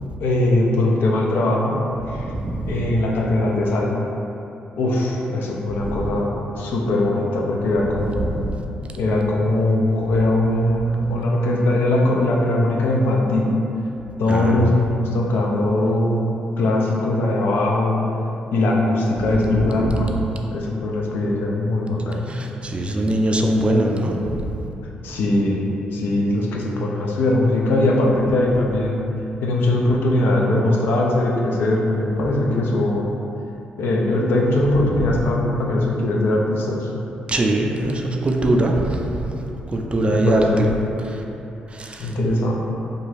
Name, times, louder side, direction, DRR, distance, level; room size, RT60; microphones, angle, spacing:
voice 1, 0.2-1.8 2.1-2.3 2.7-3.9 4.8-6.3 6.6-8.2 9.0-13.5 14.2-16.2 16.6-18.0 18.5-20.1 20.5-22.3 25.0-29.0 29.4-33.1 33.8-36.9 40.1-40.7 42.0-42.5, left 1 dB, 75° left, -2 dB, 0.4 m, -20 dB
voice 2, 2.1-2.9 5.7-6.1 8.0-8.6 14.3-14.7 19.3-20.2 22.3-24.6 34.8-35.2 37.3-39.3 39.7-40.7 41.1-41.2 41.7-42.1, right 1 dB, 30° right, 1 dB, 0.3 m, -22 dB
2.6 x 2.3 x 3.2 m, 2.9 s
supercardioid pair, 55°, 4 cm